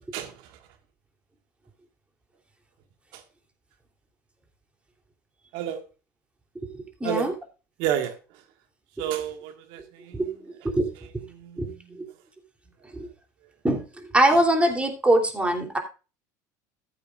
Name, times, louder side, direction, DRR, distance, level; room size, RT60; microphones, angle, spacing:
voice 1, 7.0-7.3 10.1-10.9 11.6-11.7 11.9-12.0 12.9-13.1 13.6-13.8 14.1-15.8, right 1 dB, 10° right, 3.3 m, -22 dB
voice 2, 7.8-8.1 9.0-10.2 11.3-12.0, right 10 dB, 65° right, 1.8 m, -30 dB
14.5 x 8.3 x 2.5 m
hypercardioid pair, 80°, 9 cm